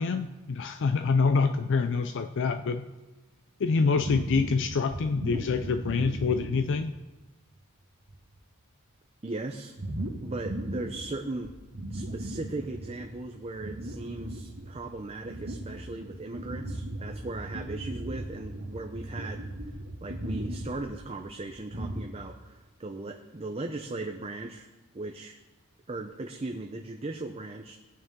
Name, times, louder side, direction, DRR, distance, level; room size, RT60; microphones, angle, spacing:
voice 1, 0.0-2.9 3.6-6.9, left 4 dB, 55° left, 9 dB, 0.4 m, -26 dB
sound 1, 3.9-7.0 7.5-7.6 8.0-8.3 9.8-11.1 11.4-13.2 13.5-22.1, right 1 dB, 80° right, 2.0 m, -37 dB
voice 2, 9.2-9.8 10.2-11.5 11.9-24.7 24.9-25.4 25.9-27.8, right 2 dB, 25° right, 3 dB, 0.6 m, -38 dB
18.5 x 9.2 x 3.7 m, 1.2 s
head